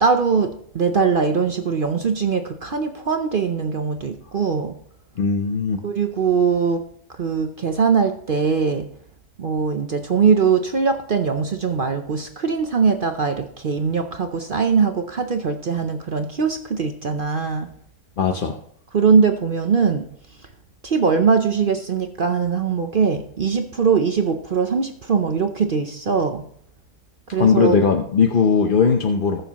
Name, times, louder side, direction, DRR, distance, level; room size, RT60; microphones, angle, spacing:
voice 1, 0.0-4.7 5.8-6.8 7.1-8.9 9.4-17.7 18.9-20.1 20.8-26.4 27.3-27.8, right 5 dB, 50° right, 6 dB, 0.7 m, -21 dB
voice 2, 5.2-5.8 18.2-18.6 27.4-29.4, left 5 dB, 45° left, 3 dB, 0.8 m, -18 dB
20.5 x 6.8 x 3.0 m, 0.63 s
omnidirectional pair, 1.6 m